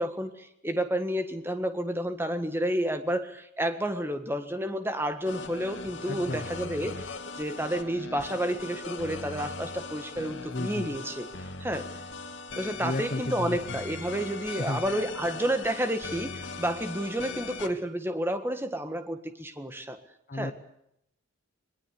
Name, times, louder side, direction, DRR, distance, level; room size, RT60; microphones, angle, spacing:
voice 1, 0.0-11.3 11.6-11.9 12.6-20.0 20.3-20.5, right 1 dB, 10° right, 8 dB, 1.6 m, -30 dB
sound 1, 5.2-17.7, left 3 dB, 55° left, 2.1 m, -39 dB
voice 2, 6.1-6.5 10.5-10.9 12.8-13.8 14.6-14.8 20.3-20.5, left 2 dB, 40° left, 8 dB, 1.1 m, -33 dB
22.0 x 21.0 x 8.4 m, 0.77 s
head